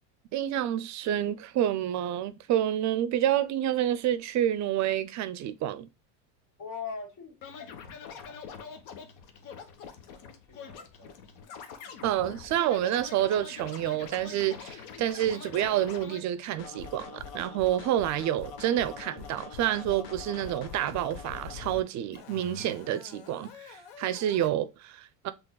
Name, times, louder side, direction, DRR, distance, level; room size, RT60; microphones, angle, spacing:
voice 1, 0.3-5.9 12.0-25.3, right 11 dB, 45° right, 0.4 m, -28 dB
voice 2, 6.6-8.8 9.6-9.8 10.1-11.2, left 5 dB, 60° left, 2.3 m, -44 dB
Scratching (performance technique), 7.4-16.2 16.6-21.8 22.1-24.5, left 6 dB, 75° left, 1.1 m, -44 dB
5.9 x 3.4 x 2.2 m
supercardioid pair, 115°, 39 cm